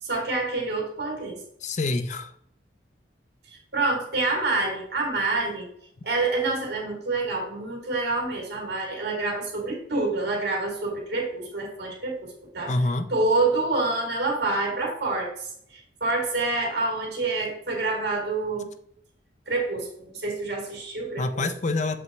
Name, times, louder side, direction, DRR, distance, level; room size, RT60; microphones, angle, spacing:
voice 1, 0.0-1.4 3.5-5.7 6.0-12.7 13.1-18.7 19.5-21.5, right 3 dB, 60° right, -1 dB, 2.8 m, -27 dB
voice 2, 1.6-2.3 12.7-13.1 21.2-22.0, left 2 dB, 40° left, 10 dB, 0.5 m, -26 dB
7.1 x 5.4 x 3.1 m, 0.68 s
head